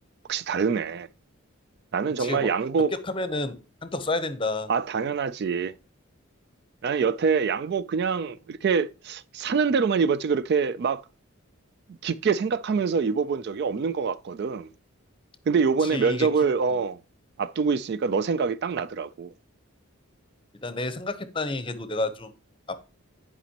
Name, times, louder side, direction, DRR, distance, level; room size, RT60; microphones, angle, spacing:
voice 1, 0.3-1.1 1.9-2.9 4.7-5.7 6.8-11.0 12.0-14.7 15.5-17.0 17.4-19.3, right 5 dB, 50° right, 0.3 m, -25 dB
voice 2, 2.2-2.5 2.9-4.7 15.8-16.3 20.6-22.3 22.7-22.8, left 2 dB, 25° left, 0.7 m, -30 dB
9.9 x 5.1 x 2.9 m
head